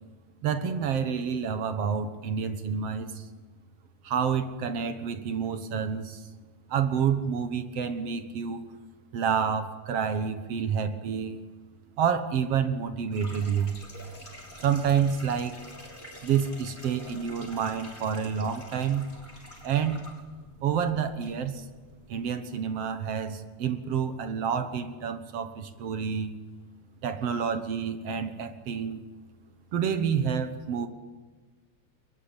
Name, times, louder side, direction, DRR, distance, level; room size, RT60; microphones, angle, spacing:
voice 1, 0.4-3.3 4.0-6.2 6.7-8.6 9.1-11.4 12.0-13.7 14.6-15.6 16.2-19.1 19.6-20.0 20.6-21.7 22.1-26.3 27.0-29.0 29.7-30.9, right 7 dB, 60° right, 10 dB, 2.2 m, -28 dB
sound 1, 13.1-22.3, left 1 dB, 15° left, 5.9 m, -48 dB
22.5 x 21.5 x 8.8 m, 1.3 s
omnidirectional pair, 3.4 m